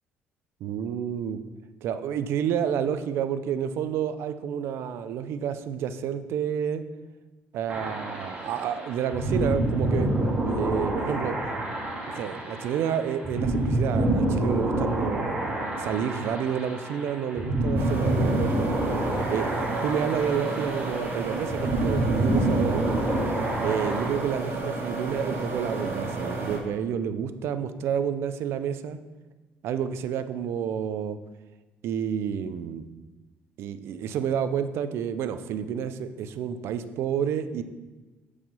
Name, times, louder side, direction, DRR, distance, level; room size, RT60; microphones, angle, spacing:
voice 1, 0.6-1.4 1.8-6.8 7.5-10.1 10.4-11.4 12.1-18.7 19.3-22.9 23.6-29.0 29.6-31.2 31.8-32.8 33.6-37.6, right 8 dB, 70° right, 11 dB, 0.6 m, -29 dB
sound 1, 7.7-24.1, right 1 dB, 25° right, 2.7 m, -28 dB
sound 2, 17.8-26.6, right 2 dB, 55° right, 1.4 m, -32 dB
7.2 x 4.9 x 5.4 m, 1.2 s
supercardioid pair, 80°, 4 cm